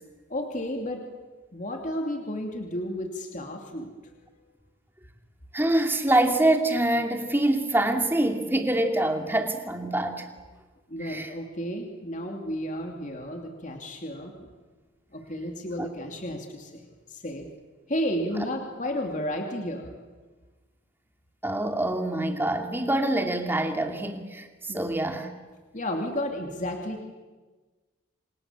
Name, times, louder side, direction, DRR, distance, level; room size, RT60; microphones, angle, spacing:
voice 1, 0.3-1.0 1.5-3.9 10.9-14.5 15.1-17.4 17.9-19.9 24.7-24.8 25.7-27.0, equal, 40° left, 3 dB, 2.7 m, -32 dB
voice 2, 5.5-10.3 11.0-11.3 15.8-15.9 21.4-25.3, right 1 dB, 10° right, 4 dB, 2.4 m, -25 dB
29.0 x 25.5 x 7.5 m, 1.3 s
head